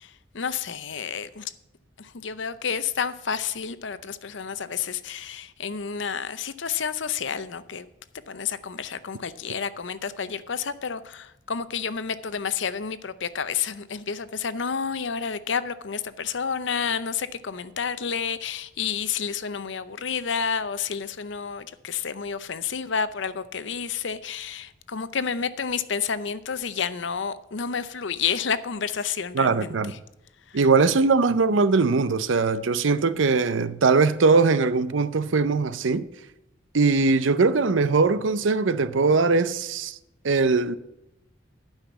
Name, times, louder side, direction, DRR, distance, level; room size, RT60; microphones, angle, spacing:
voice 1, 0.0-1.5 2.0-7.9 8.3-30.0 30.5-30.6, left 6 dB, 65° left, 0.7 m, -30 dB
voice 2, 29.3-30.0 30.5-36.1 36.7-39.9 40.2-40.8, right 4 dB, 75° right, 0.6 m, -21 dB
11.5 x 5.8 x 7.0 m
head